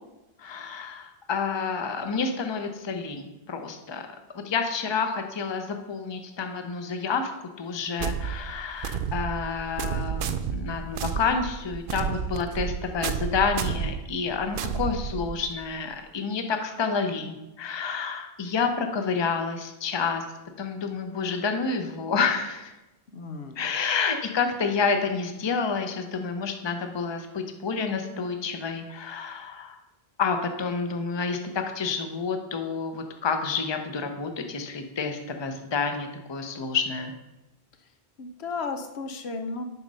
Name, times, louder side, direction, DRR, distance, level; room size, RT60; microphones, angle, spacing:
voice 1, 0.4-4.0 4.3-7.3 7.6-20.2 20.6-22.7 23.6-29.8 30.2-37.1, left 5 dB, 30° left, 6 dB, 0.6 m, -29 dB
sound 1, 8.0-15.6, right 7 dB, 65° right, 0.7 m, -31 dB
voice 2, 23.1-23.6 38.2-39.6, left 4 dB, 80° left, 7 dB, 1.0 m, -34 dB
8.1 x 5.2 x 5.4 m, 1.0 s
omnidirectional pair, 1.1 m